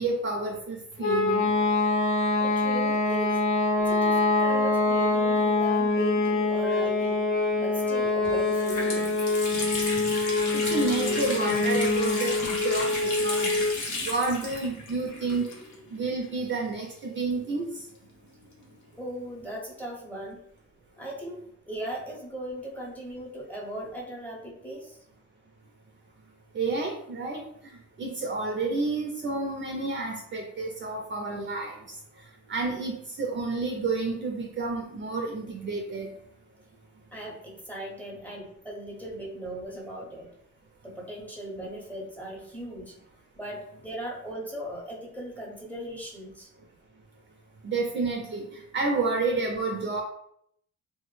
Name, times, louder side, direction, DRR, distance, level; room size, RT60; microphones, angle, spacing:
voice 1, 0.0-1.5 10.5-13.7 14.0-15.5 15.9-17.7 26.5-27.4 28.0-31.8 32.5-36.1 47.6-50.0, right 3 dB, 40° right, 1 dB, 0.4 m, -30 dB
sound 1, 1.0-13.8, left 3 dB, 45° left, 0.5 m, -25 dB
voice 2, 2.4-3.4 3.8-7.3 7.6-9.2 19.0-20.4 21.0-25.0 37.1-40.3 40.8-42.9 43.4-46.5 48.9-49.1, right 1 dB, 5° left, -3 dB, 0.7 m, -38 dB
Water tap faucet, 7.8-7.9 8.2-16.3 17.2-18.7, left 2 dB, 80° left, 0.8 m, -34 dB
2.2 x 2.0 x 3.0 m, 0.72 s
cardioid pair, 90°, 30 cm